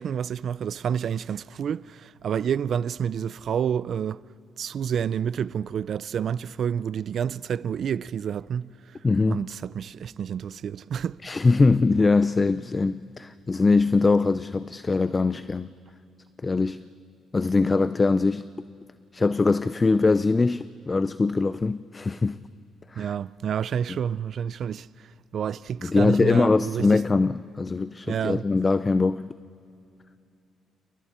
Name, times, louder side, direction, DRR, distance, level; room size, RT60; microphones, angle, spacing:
voice 1, 0.0-4.2 4.6-11.2 23.0-27.0 28.1-28.5, right 8 dB, 60° right, 0.4 m, -29 dB
voice 2, 9.0-9.4 11.2-15.7 16.4-16.8 17.3-18.5 19.1-22.4 22.9-23.0 25.9-29.3, left 3 dB, 25° left, 0.5 m, -22 dB
29.5 x 29.0 x 4.4 m
cardioid pair, 90°, 0 cm